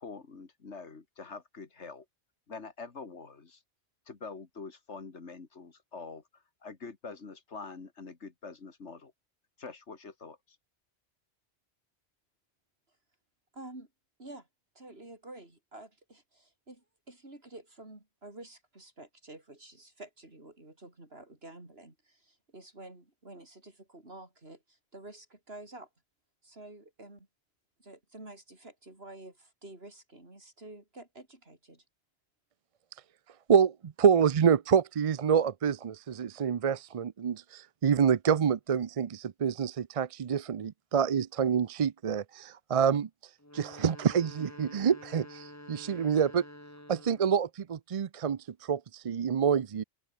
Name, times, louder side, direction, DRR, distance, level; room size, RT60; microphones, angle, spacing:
voice 1, 0.0-2.1 2.5-3.6 4.1-9.1 9.6-10.6, left 4 dB, 85° left, 2.4 m, -45 dB
voice 2, 13.5-13.9 14.2-14.5 14.8-25.9 26.4-27.3 27.8-31.8, right 2 dB, 60° right, 5.3 m, -49 dB
voice 3, 33.5-43.1 43.5-46.4 46.9-49.8, right 7 dB, 45° right, 0.5 m, -27 dB
sound 1, 43.4-47.4, left 1 dB, 15° left, 3.5 m, -49 dB
open air
omnidirectional pair, 1.2 m